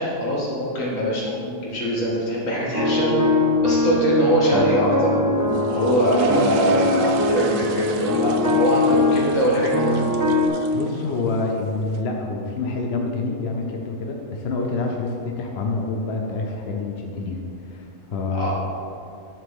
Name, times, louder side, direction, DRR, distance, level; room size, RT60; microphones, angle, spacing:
voice 1, 0.0-3.1 3.6-9.9 18.3-18.5, equal, 80° left, -5 dB, 2.3 m, -22 dB
sound 1, 2.7-10.5, left 1 dB, 20° right, 0.6 m, -22 dB
sound 2, 5.4-12.0, right 7 dB, 65° right, 0.8 m, -37 dB
voice 2, 10.7-18.5, left 3 dB, 55° left, 1 dB, 1.0 m, -27 dB
10.5 x 7.2 x 3.6 m, 2.6 s
omnidirectional pair, 1.4 m